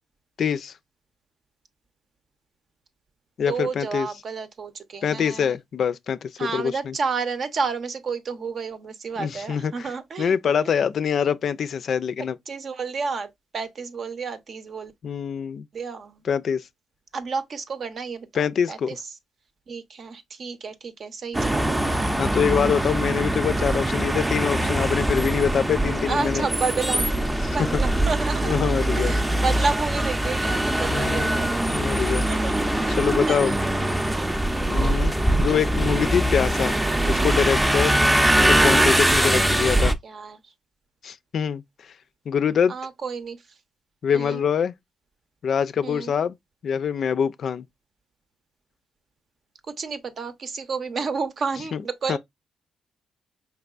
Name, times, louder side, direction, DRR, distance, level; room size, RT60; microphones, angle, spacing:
voice 1, 0.4-0.7 3.4-4.1 5.0-6.9 9.2-9.9 10.2-12.4 15.0-15.6 16.2-16.6 18.3-19.0 22.2-26.4 27.4-27.8 28.4-29.2 30.9-31.3 31.6-32.3 32.9-33.6 34.7-35.1 35.4-36.8 37.1-38.0 38.3-40.0 41.0-41.9 42.3-42.7 44.0-44.7 45.4-46.4 46.6-47.7 51.7-51.8 52.1-52.2, left 7 dB, 60° left, 0.4 m, -24 dB
voice 2, 3.5-5.6 6.4-10.4 10.6-10.8 12.5-14.9 15.7-16.2 17.1-19.0 19.7-22.1 26.1-28.6 29.0-31.7 32.3-32.7 33.3-33.6 34.5-35.0 39.4-40.5 42.7-43.4 44.1-44.4 45.8-46.1 49.8-52.2, right 4 dB, 55° right, 0.7 m, -31 dB
sound 1, 21.3-39.9, right 1 dB, 10° right, 0.5 m, -22 dB
4.7 x 3.3 x 2.4 m
cardioid pair, 75°, 0 cm